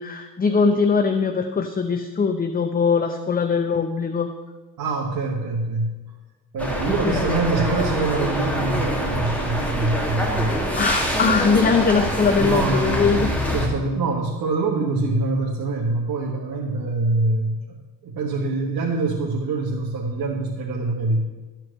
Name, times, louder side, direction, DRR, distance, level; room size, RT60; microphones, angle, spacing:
voice 1, 0.0-4.3 6.9-7.4 10.8-13.3, left 5 dB, 20° left, 7 dB, 0.6 m, -21 dB
voice 2, 4.8-5.9 6.5-10.6 12.3-21.2, right 3 dB, 55° right, -2 dB, 1.6 m, -25 dB
sound 1, 6.6-13.7, equal, 5° left, 2.1 m, -25 dB
12.5 x 4.5 x 7.7 m, 1.2 s
cardioid pair, 90°, 40 cm